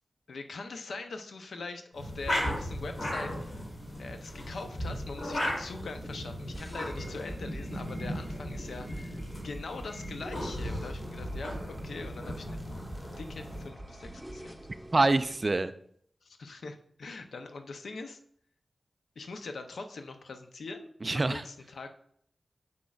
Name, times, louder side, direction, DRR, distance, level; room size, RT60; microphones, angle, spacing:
voice 1, 0.3-3.5 4.0-12.6 13.2-14.6 16.2-18.2 19.2-21.9, left 3 dB, 90° left, 7 dB, 0.6 m, -42 dB
sound 1, 1.9-13.7, equal, 55° left, 2.8 m, -37 dB
sound 2, 6.5-15.5, right 1 dB, 5° right, 1.1 m, -45 dB
voice 2, 14.9-15.7 21.0-21.4, right 2 dB, 45° right, 12 dB, 0.4 m, -25 dB
7.1 x 6.2 x 2.4 m, 0.66 s
cardioid pair, 50°, 0 cm